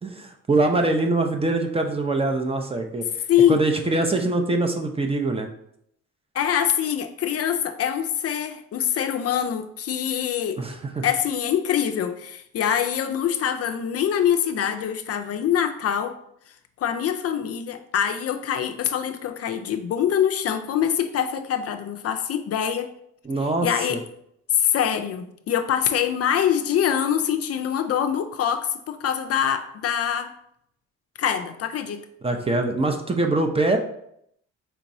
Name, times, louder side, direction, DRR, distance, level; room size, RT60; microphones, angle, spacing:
voice 1, 0.0-3.2 3.5-5.5 10.6-11.0 23.2-24.0 32.2-33.8, right 2 dB, 20° right, 4 dB, 0.5 m, -23 dB
voice 2, 3.3-3.6 6.3-10.6 11.0-16.2 16.8-22.9 23.6-24.0 24.5-30.3 31.2-32.0, left 9 dB, 55° left, 7 dB, 0.4 m, -24 dB
4.5 x 2.9 x 2.6 m, 0.72 s
cardioid pair, 90°, 30 cm